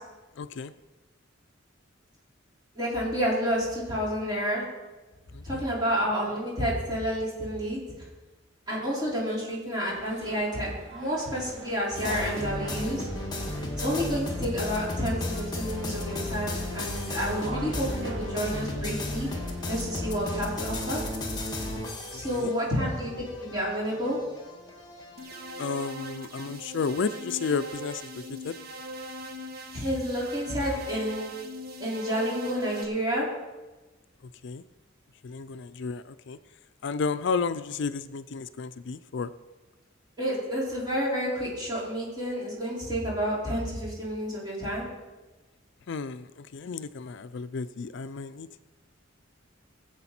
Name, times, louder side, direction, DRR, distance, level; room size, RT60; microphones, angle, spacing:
voice 1, 0.4-0.7 5.3-5.7 22.1-22.5 25.6-28.6 34.2-34.6 35.2-36.4 36.8-39.3 45.9-48.6, left 5 dB, 65° left, 13 dB, 0.4 m, -32 dB
voice 2, 2.8-4.6 5.4-7.8 8.7-13.1 13.8-19.3 19.7-21.0 22.1-23.1 23.4-24.2 29.7-31.3 31.8-33.2 40.2-44.8, equal, 20° right, -6 dB, 4.6 m, -29 dB
sound 1, 9.9-21.1, right 1 dB, 65° right, 1.6 m, -44 dB
sound 2, 11.9-25.8, left 1 dB, 20° left, 1.7 m, -34 dB
sound 3, 25.2-32.9, equal, 50° right, 1.2 m, -41 dB
18.5 x 8.0 x 4.3 m, 1.2 s
head